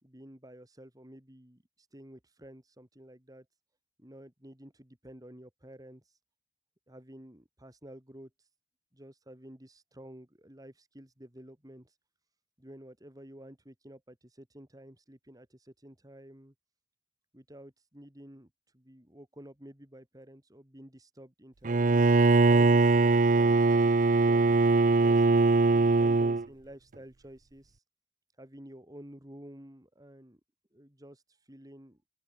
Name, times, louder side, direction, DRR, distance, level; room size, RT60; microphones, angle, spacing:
voice 1, 0.0-3.5 4.0-6.2 6.9-8.5 8.9-12.0 12.6-16.5 17.3-22.1 25.0-25.2 25.7-27.8 28.4-30.4 30.7-32.0, right 1 dB, 20° right, 3.3 m, -51 dB
Bowed string instrument, 21.6-26.4, right 3 dB, 45° right, 0.6 m, -22 dB
open air
head